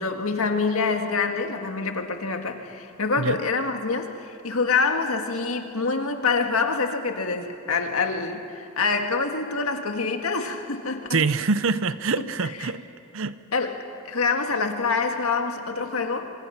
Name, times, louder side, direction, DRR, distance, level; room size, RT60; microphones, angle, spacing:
voice 1, 0.0-11.2 12.6-12.7 13.5-16.3, left 4 dB, 70° left, 1.9 m, -26 dB
voice 2, 11.1-12.8 13.1-13.4, right 4 dB, 60° right, 0.7 m, -25 dB
26.5 x 26.0 x 5.9 m
head